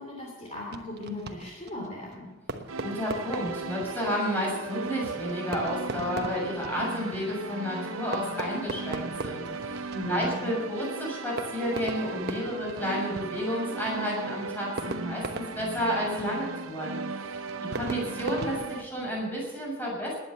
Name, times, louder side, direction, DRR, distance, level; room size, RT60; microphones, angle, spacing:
voice 1, 0.0-2.3 9.9-10.5, left 1 dB, 35° left, -2 dB, 3.0 m, -37 dB
Fireworks, 0.6-19.5, right 2 dB, 50° right, 1.1 m, -41 dB
sound 1, 2.7-18.8, right 3 dB, 75° right, 0.9 m, -37 dB
voice 2, 2.8-20.1, equal, 10° left, -4 dB, 7.0 m, -31 dB
19.5 x 9.7 x 7.1 m, 1.2 s
head